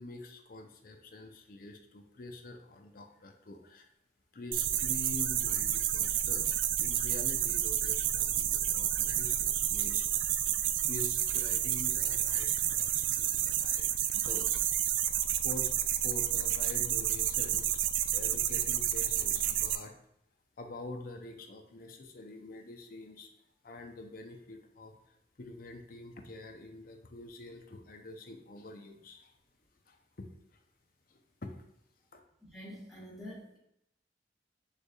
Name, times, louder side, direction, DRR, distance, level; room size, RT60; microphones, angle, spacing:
voice 1, 0.0-3.9 4.3-10.5 10.9-14.6 15.4-15.7 16.0-17.8 18.1-19.9 20.6-23.3 23.6-29.3 29.9-30.3 30.5-30.6 31.1-31.6 32.1-32.2, left 2 dB, 50° left, 5 dB, 0.6 m, -46 dB
sound 1, 4.5-19.8, right 11 dB, 85° right, 0.3 m, -30 dB
voice 2, 32.4-33.6, equal, ahead, -8 dB, 1.3 m, -46 dB
6.5 x 3.3 x 2.3 m, 0.78 s
head